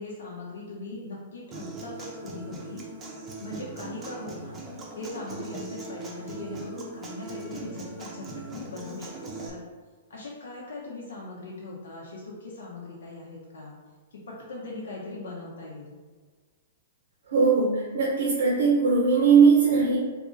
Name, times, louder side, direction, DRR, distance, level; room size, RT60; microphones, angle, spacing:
voice 1, 0.0-2.8 3.4-4.6 4.9-9.6 10.1-13.7 14.3-16.0, left 2 dB, 80° left, -5 dB, 0.7 m, -39 dB
Human voice / Acoustic guitar, 1.5-9.5, right 3 dB, 20° right, 0.6 m, -40 dB
voice 2, 17.3-20.0, right 5 dB, 70° right, -4 dB, 0.8 m, -20 dB
2.9 x 2.5 x 3.8 m, 1.5 s
hypercardioid pair, 145°, 0 cm